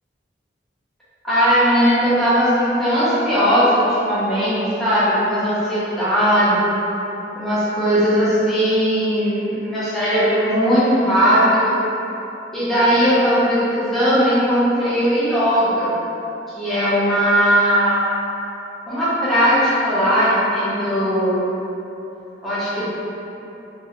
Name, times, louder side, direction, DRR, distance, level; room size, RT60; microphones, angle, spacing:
voice 1, 1.2-6.7 7.4-11.8 12.5-15.9 16.6-18.0 18.9-21.4 22.4-22.8, equal, ahead, -12 dB, 0.6 m, -18 dB
2.7 x 2.1 x 2.5 m, 3.0 s
head